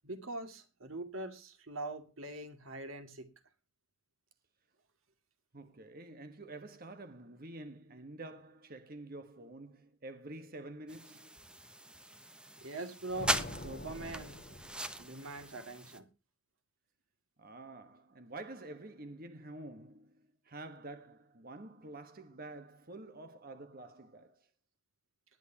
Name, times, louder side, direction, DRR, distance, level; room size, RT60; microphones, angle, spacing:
voice 1, 0.0-3.3 12.6-14.4 15.0-16.1, right 2 dB, 85° right, 2.4 m, -43 dB
voice 2, 5.5-11.3 17.4-24.5, right 2 dB, 45° right, 1.4 m, -48 dB
sound 1, 10.9-16.0, right 1 dB, 5° right, 0.9 m, -40 dB
sound 2, 13.1-15.4, left 1 dB, 45° left, 2.5 m, -46 dB
19.5 x 11.0 x 2.9 m
head